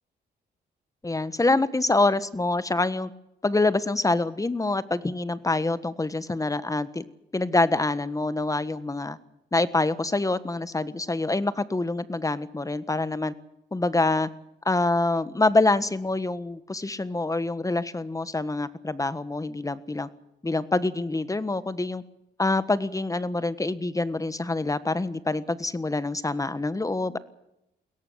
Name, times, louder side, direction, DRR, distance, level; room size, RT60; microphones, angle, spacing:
voice 1, 1.0-3.1 3.4-7.0 7.3-9.2 9.5-13.3 13.7-14.3 14.6-20.1 20.4-22.0 22.4-27.2, left 2 dB, 20° left, 15 dB, 1.5 m, -26 dB
22.0 x 17.5 x 8.1 m, 0.85 s
cardioid pair, 85°, 18 cm